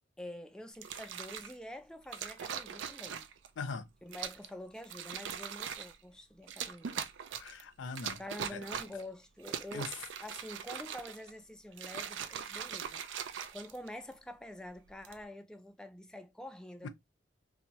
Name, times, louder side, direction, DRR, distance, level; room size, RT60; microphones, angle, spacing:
voice 1, 0.2-3.3 4.0-7.1 8.2-9.9 10.2-16.9, left 1 dB, 5° left, 0.3 m, -47 dB
sound 1, 0.7-1.5 2.1-3.5 4.1-4.5 4.8-6.0 6.5-7.6 8.0-9.0 9.4-11.3 11.7-14.1 14.9-15.2, right 8 dB, 85° right, 0.4 m, -41 dB
voice 2, 3.6-3.9 7.4-8.2 8.5-8.6 9.7-9.9 16.8-16.9, left 4 dB, 90° left, 0.5 m, -40 dB
2.6 x 2.2 x 2.9 m
head